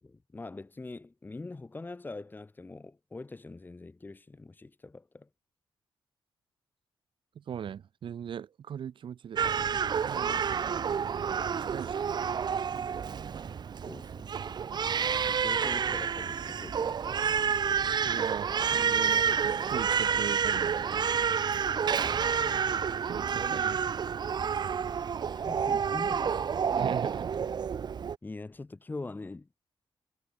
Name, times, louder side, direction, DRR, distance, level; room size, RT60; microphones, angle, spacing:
voice 1, 0.0-5.3 10.2-10.6 11.1-11.2 13.8-14.6 15.3-17.0 21.9-22.7 23.2-23.6 25.3-26.6 28.2-29.5, left 3 dB, 20° left, 4.5 m, -44 dB
voice 2, 7.3-9.4 10.0-10.4 11.3-12.2 18.0-21.1 23.0-23.8 26.8-27.2, right 8 dB, 65° right, 3.1 m, -39 dB
Crying sobbing, 9.4-28.2, right 7 dB, 50° right, 1.8 m, -29 dB
wide cardioid pair, 130°, 9 cm